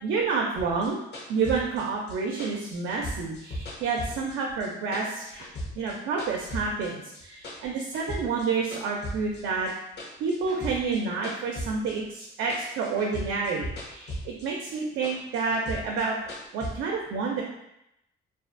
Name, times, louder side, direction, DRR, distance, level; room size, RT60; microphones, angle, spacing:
voice 1, 0.0-1.0 1.3-5.4 5.8-9.7 10.2-16.2 16.5-17.4, right 4 dB, 80° right, -1 dB, 0.4 m, -29 dB
sound 1, 0.6-4.7 4.9-6.9 7.1-8.5 8.7-12.2 12.5-14.5 14.7-16.7, equal, 60° left, 0.8 m, -37 dB
2.4 x 2.4 x 2.4 m, 0.82 s
cardioid pair, 90°, 20 cm